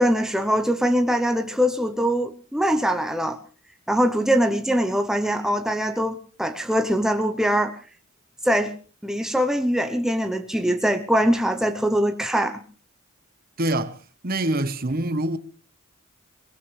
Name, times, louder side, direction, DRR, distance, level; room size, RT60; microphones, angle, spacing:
voice 1, 0.0-3.4 3.9-7.8 8.4-8.7 9.0-12.6, equal, ahead, 0.7 m, -22 dB
voice 2, 13.6-15.4, right 1 dB, 45° right, 1.0 m, -25 dB
22.0 x 19.5 x 3.2 m
head